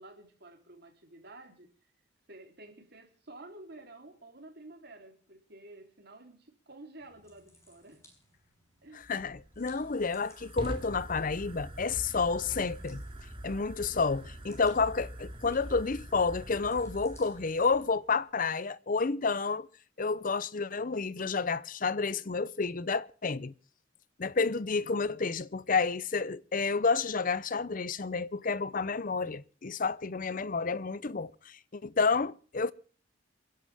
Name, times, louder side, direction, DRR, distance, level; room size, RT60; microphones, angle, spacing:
voice 1, 0.0-1.7 2.3-8.0 8.8-9.1, right 2 dB, 55° right, 3.6 m, -51 dB
sound 1, 7.0-18.3, left 1 dB, 15° left, 5.8 m, -63 dB
Fire, 9.0-18.0, equal, 25° right, 2.7 m, -44 dB
voice 2, 9.1-13.0 13.4-19.7 20.0-23.5 24.2-32.7, left 4 dB, 45° left, 0.7 m, -30 dB
27.5 x 11.0 x 3.5 m
head